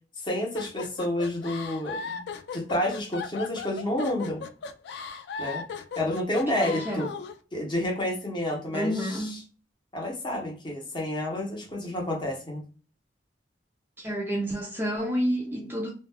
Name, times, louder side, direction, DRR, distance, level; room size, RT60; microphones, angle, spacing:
voice 1, 0.2-2.2 2.5-4.4 5.4-5.7 6.0-7.1 7.5-9.4 9.9-12.6, left 1 dB, 25° left, 0.8 m, -30 dB
sound 1, 0.6-7.4, left 5 dB, 65° left, 0.3 m, -37 dB
voice 2, 6.5-7.1 8.7-9.4 14.0-15.9, equal, 10° right, 0.4 m, -29 dB
2.3 x 2.1 x 3.3 m
head